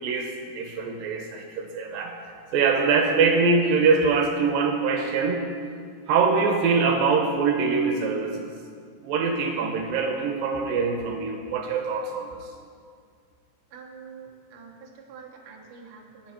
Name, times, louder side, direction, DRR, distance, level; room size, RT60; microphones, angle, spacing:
voice 1, 0.0-2.1 2.5-5.4 6.1-8.6 9.0-12.3, right 4 dB, 75° right, 3 dB, 2.5 m, -23 dB
voice 2, 13.7-16.3, right 5 dB, 55° right, 0 dB, 1.6 m, -46 dB
19.0 x 7.9 x 4.5 m, 2.1 s
omnidirectional pair, 4.4 m